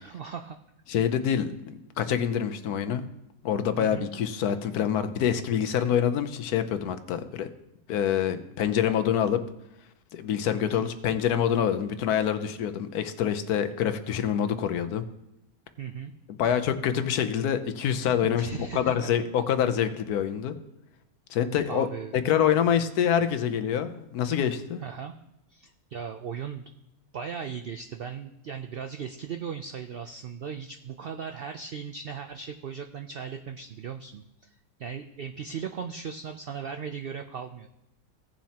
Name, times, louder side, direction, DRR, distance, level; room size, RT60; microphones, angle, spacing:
voice 1, 0.0-0.6 3.8-4.1 10.7-10.9 15.8-16.1 18.2-19.1 21.7-22.1 24.8-25.1 25.5-26.6 27.1-37.7, right 7 dB, 75° right, 6 dB, 0.5 m, -37 dB
voice 2, 0.9-3.0 3.4-7.5 7.9-9.4 10.1-15.0 16.4-20.5 21.3-21.9 22.1-24.8, left 9 dB, 85° left, 9 dB, 1.2 m, -26 dB
17.0 x 7.2 x 2.9 m, 0.88 s
omnidirectional pair, 1.6 m